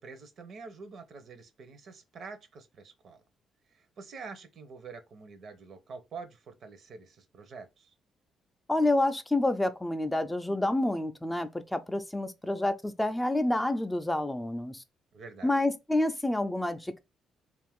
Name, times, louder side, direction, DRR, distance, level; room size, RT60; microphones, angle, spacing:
voice 1, 0.0-3.2 3.7-7.9 15.1-15.5, right 4 dB, 60° right, 0.6 m, -46 dB
voice 2, 8.7-14.8 15.4-17.0, left 1 dB, 10° left, 0.4 m, -28 dB
2.5 x 2.4 x 3.5 m
cardioid pair, 90°, 0 cm